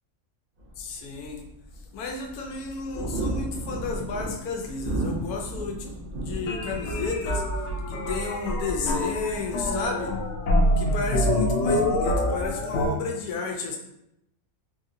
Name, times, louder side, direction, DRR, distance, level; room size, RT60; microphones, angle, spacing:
sound 1, 0.6-11.8, right 1 dB, 45° right, 0.8 m, -36 dB
voice 1, 0.8-1.4 1.9-5.9 6.1-7.4 7.9-10.1 10.8-13.8, left 4 dB, 85° left, 1 dB, 1.1 m, -32 dB
sound 2, 6.5-12.9, left 1 dB, 65° left, 0.7 m, -26 dB
3.4 x 2.7 x 2.6 m, 0.82 s
omnidirectional pair, 1.6 m